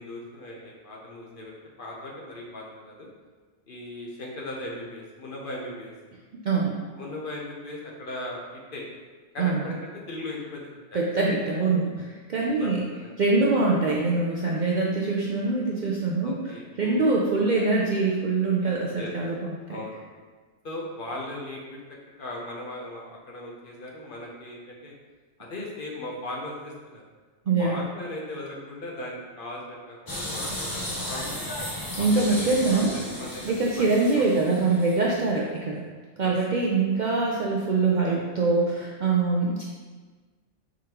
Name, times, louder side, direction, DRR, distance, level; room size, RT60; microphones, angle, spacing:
voice 1, 0.0-3.1 3.7-5.9 7.0-8.8 9.3-11.0 12.4-13.1 13.4-13.6 16.2-17.0 18.6-19.1 19.7-20.0 20.6-24.9 25.4-27.0 27.6-31.5 32.0-33.9 34.2-34.3 36.2-36.3 38.0-38.3, left 1 dB, 55° left, -2 dB, 0.8 m, -38 dB
voice 2, 9.4-9.7 10.9-12.8 13.2-16.4 16.8-19.8 27.5-27.8 32.0-32.9 33.4-35.8 36.2-39.6, right 3 dB, 60° right, -3 dB, 0.5 m, -24 dB
sound 1, 30.1-35.2, left 1 dB, 25° left, 0.5 m, -34 dB
4.8 x 3.7 x 2.9 m, 1.4 s
omnidirectional pair, 1.2 m